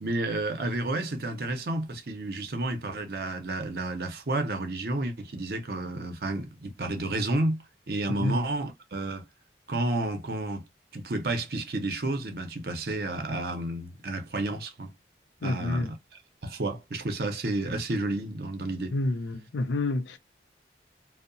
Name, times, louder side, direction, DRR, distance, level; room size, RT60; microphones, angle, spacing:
voice 1, 0.0-9.3 9.7-10.7 10.9-14.9 15.4-15.9 16.4-18.9, right 2 dB, 55° right, 0.6 m, -31 dB
voice 2, 8.1-8.4 15.4-15.9 18.9-20.2, left 2 dB, 90° left, 0.5 m, -29 dB
2.8 x 2.0 x 2.5 m
head